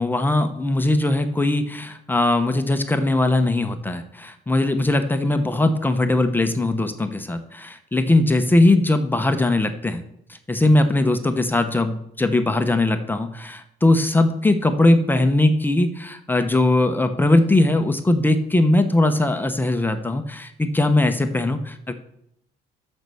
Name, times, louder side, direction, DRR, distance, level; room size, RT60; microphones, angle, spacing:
voice 1, 0.0-10.0 10.5-21.9, left 2 dB, 10° left, 7 dB, 0.9 m, -20 dB
12.5 x 5.5 x 6.9 m, 0.76 s
cardioid pair, 110°, 17 cm